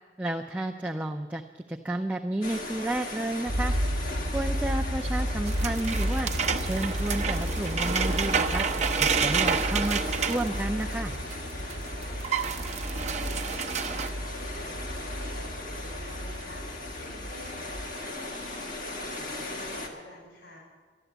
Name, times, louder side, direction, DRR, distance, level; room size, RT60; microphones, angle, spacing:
voice 1, 0.2-1.4 1.7-3.7 4.3-6.3 6.6-8.7 9.0-10.0 10.3-11.1, right 1 dB, 10° right, 2 dB, 0.5 m, -31 dB
sound 1, 2.4-19.9, left 2 dB, 45° left, 1.9 m, -38 dB
sound 2, 3.5-18.0, equal, 70° right, 1.0 m, -33 dB
sound 3, 5.5-11.4 11.7-11.8 12.0-14.1, right 6 dB, 40° right, 0.7 m, -29 dB
voice 2, 11.8-20.6, left 1 dB, 75° left, -2 dB, 5.3 m, -49 dB
12.0 x 12.0 x 8.1 m, 1.5 s
head